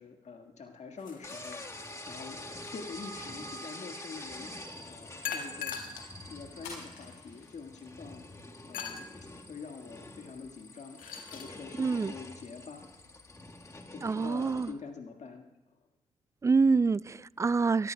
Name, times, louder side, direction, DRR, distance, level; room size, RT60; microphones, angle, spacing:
voice 1, 0.0-1.6 2.1-2.4 2.7-4.5 4.9-5.8 6.3-8.2 8.7-9.1 9.5-11.0 11.3-12.9 13.9-15.5, left 5 dB, 55° left, 1.6 m, -45 dB
sound 1, 1.0-2.1 5.2-6.1 6.8-6.9 8.7-9.1 10.8-11.5, left 6 dB, 70° left, 1.7 m, -40 dB
sound 2, 1.2-14.7, left 1 dB, 20° left, 1.5 m, -46 dB
sound 3, 4.3-13.8, left 3 dB, 90° left, 4.5 m, -57 dB
voice 2, 11.8-12.1 14.0-14.7 16.4-17.9, right 4 dB, 20° right, 0.3 m, -26 dB
23.0 x 14.0 x 2.2 m
hypercardioid pair, 45°, 15 cm